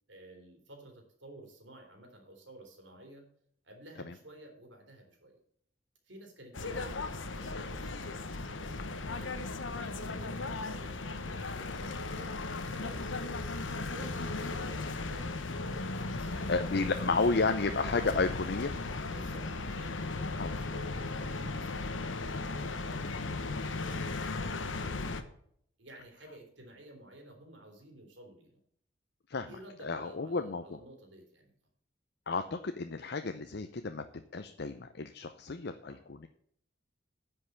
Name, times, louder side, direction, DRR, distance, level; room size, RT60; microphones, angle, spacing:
voice 1, 0.1-3.2 3.6-5.4 6.0-15.6 16.0-16.6 16.9-17.6 19.1-20.4 20.7-22.0 22.5-24.9 25.8-28.5 29.5-31.5 35.9-36.0, right 1 dB, 70° right, 2 dB, 3.6 m, -53 dB
sound 1, 6.5-25.2, left 3 dB, 90° left, 1.1 m, -36 dB
voice 2, 16.5-19.0 20.4-20.5 29.3-29.5 29.8-30.6 32.3-36.3, left 3 dB, 60° left, 8 dB, 0.7 m, -32 dB
10.0 x 5.6 x 8.0 m, 0.68 s
head